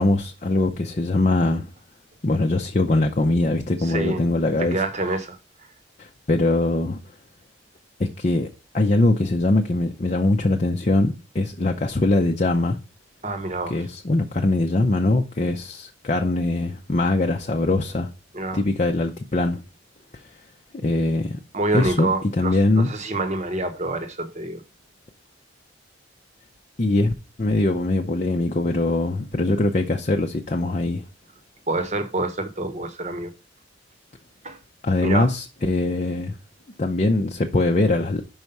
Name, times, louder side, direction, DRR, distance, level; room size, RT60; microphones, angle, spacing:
voice 1, 0.0-1.7 2.2-4.8 6.0-7.0 8.0-12.8 13.7-18.1 18.5-19.6 20.1-20.2 20.8-21.4 21.7-22.1 22.4-22.9 26.8-27.1 27.4-31.0 34.8-36.4 36.8-38.2, left 2 dB, 35° left, 0.6 m, -22 dB
voice 2, 3.8-4.2 4.6-5.4 13.2-13.8 18.3-18.6 21.5-24.6 31.7-33.3 34.4-34.6 35.0-35.3, right 2 dB, 35° right, 1.0 m, -27 dB
5.6 x 4.7 x 5.4 m
head